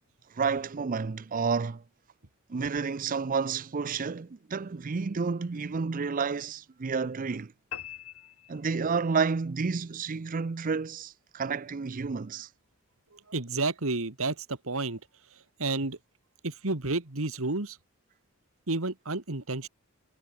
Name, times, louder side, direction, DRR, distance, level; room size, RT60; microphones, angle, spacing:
voice 1, 0.3-1.8 2.5-7.5 8.5-12.5, right 5 dB, 40° right, 0.5 m, -30 dB
sound 1, 7.7-9.2, left 10 dB, 75° left, 2.3 m, -43 dB
voice 2, 13.1-15.0 15.6-16.0 16.4-17.8 18.7-19.7, right 3 dB, 65° right, 2.0 m, -31 dB
head